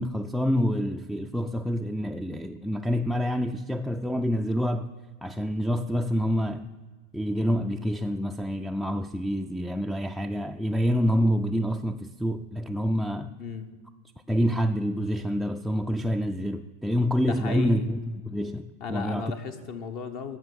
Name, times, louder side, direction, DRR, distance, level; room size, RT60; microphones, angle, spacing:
voice 1, 0.0-4.9 5.2-6.7 7.1-13.4 14.3-18.0 18.3-19.3, equal, ahead, 10 dB, 0.4 m, -27 dB
voice 2, 13.4-13.7 17.3-17.9 18.8-20.4, left 6 dB, 45° left, 8 dB, 0.9 m, -35 dB
15.5 x 6.1 x 6.2 m, 1.4 s
figure-of-eight pair, 90°, 0 cm